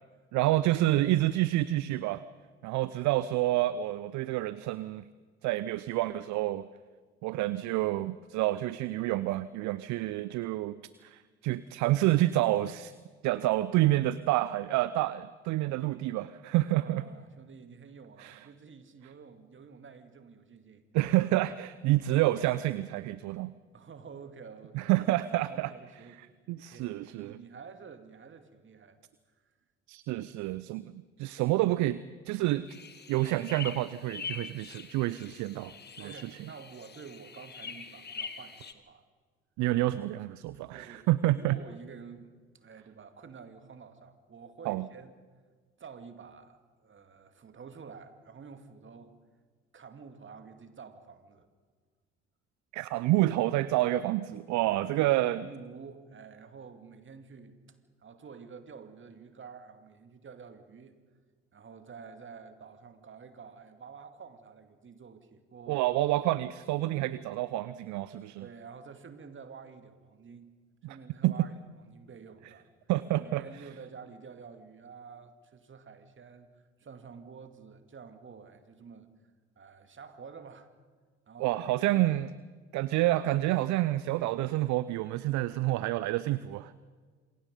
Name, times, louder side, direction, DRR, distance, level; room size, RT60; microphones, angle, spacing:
voice 1, 0.3-2.2 2.6-5.1 5.4-6.7 7.2-12.9 13.2-17.0 18.2-18.5 20.9-23.5 24.7-25.7 26.2-27.4 29.9-30.9 31.2-32.7 33.1-35.7 36.0-36.4 39.6-41.6 44.6-44.8 52.7-55.4 65.7-68.5 70.8-71.0 71.2-71.3 72.9-73.4 81.4-82.3 82.7-86.7, right 16 dB, 55° right, 16 dB, 0.7 m, -28 dB
voice 2, 16.6-20.8 23.7-26.2 26.6-29.0 36.0-39.0 40.7-41.1 41.3-42.3 42.5-45.1 45.8-49.2 49.7-51.5 54.6-61.0 61.5-65.8 68.4-70.5 70.8-72.6 73.1-79.1 79.6-80.7 81.3-82.2, right 5 dB, 35° right, 8 dB, 2.5 m, -49 dB
sound 1, 32.7-38.7, left 5 dB, 30° left, 1.9 m, -44 dB
27.0 x 23.0 x 5.3 m, 1.5 s
figure-of-eight pair, 55°, 34 cm